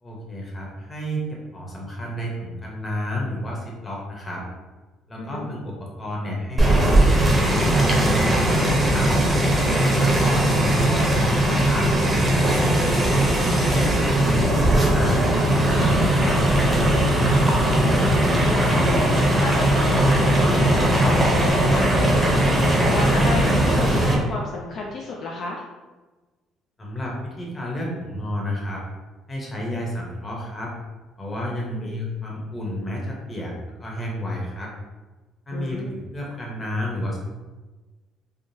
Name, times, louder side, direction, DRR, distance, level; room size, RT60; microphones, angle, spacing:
voice 1, 0.0-4.4 5.1-9.1 9.8-12.2 12.9-16.9 26.8-28.8 29.3-30.7 31.2-33.5 33.8-34.7 35.5-37.2, equal, 25° left, -2 dB, 0.9 m, -31 dB
voice 2, 5.2-5.5 13.1-13.3 17.7-25.6 31.7-32.0 35.5-36.0, left 3 dB, 60° left, -2 dB, 0.4 m, -32 dB
sound 1, 6.6-24.1, right 1 dB, 15° right, 0.7 m, -19 dB
3.5 x 2.2 x 2.7 m, 1.2 s
cardioid pair, 100°, 0 cm